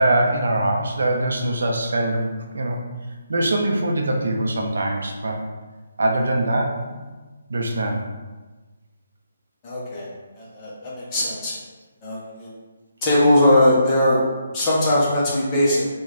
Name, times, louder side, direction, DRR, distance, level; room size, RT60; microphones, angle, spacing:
voice 1, 0.0-2.3 2.5-2.8 3.3-5.4 6.0-7.1 7.5-8.0, right 1 dB, 70° right, 1 dB, 0.5 m, -22 dB
voice 2, 9.6-10.1 10.4-11.5 12.0-12.5 13.0-14.2 14.5-15.9, left 1 dB, 15° left, -7 dB, 0.5 m, -19 dB
3.1 x 2.1 x 3.7 m, 1.3 s
hypercardioid pair, 180°, 0 cm